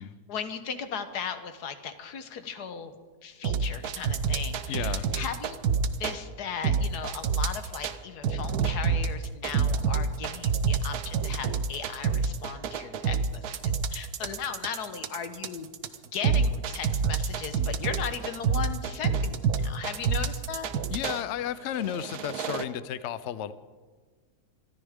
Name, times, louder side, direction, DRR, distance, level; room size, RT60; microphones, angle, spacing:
voice 1, 0.3-2.9 3.2-5.6 6.0-15.7 16.1-20.7, left 7 dB, 85° left, 9 dB, 1.6 m, -37 dB
sound 1, 3.4-6.2 6.6-7.9 8.2-21.2 21.8-22.6, right 6 dB, 80° right, 1.3 m, -27 dB
voice 2, 4.7-5.1 20.9-23.5, left 10 dB, 60° left, 14 dB, 0.8 m, -33 dB
25.0 x 13.5 x 3.6 m, 1.4 s
omnidirectional pair, 1.7 m